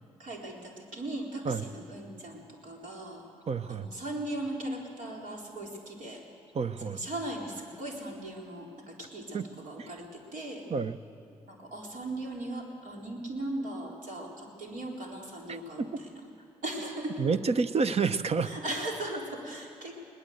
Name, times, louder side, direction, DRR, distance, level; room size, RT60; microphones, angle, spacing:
voice 1, 0.2-3.2 3.7-6.2 6.9-10.6 11.5-16.2 16.6-17.2 18.4-19.9, right 1 dB, 65° right, -1 dB, 4.3 m, -38 dB
voice 2, 3.5-3.9 6.5-7.0 9.3-9.4 9.8-9.9 10.7-11.0 15.5-16.0 17.2-18.5, right 5 dB, 45° right, 14 dB, 0.9 m, -29 dB
21.5 x 19.0 x 8.0 m, 2.5 s
hypercardioid pair, 45°, 15 cm